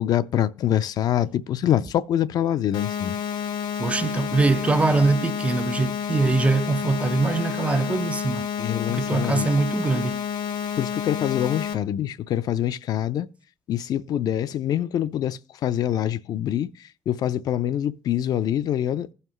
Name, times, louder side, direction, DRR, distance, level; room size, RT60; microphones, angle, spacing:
voice 1, 0.0-3.2 8.6-9.5 10.8-13.3 13.7-16.7 17.1-19.1, left 11 dB, 60° left, 0.4 m, -25 dB
sound 1, 2.7-11.7, left 8 dB, 85° left, 1.0 m, -29 dB
voice 2, 3.8-8.5 8.9-10.2, right 3 dB, 15° right, 0.3 m, -23 dB
15.5 x 5.6 x 3.1 m
cardioid pair, 145°, 8 cm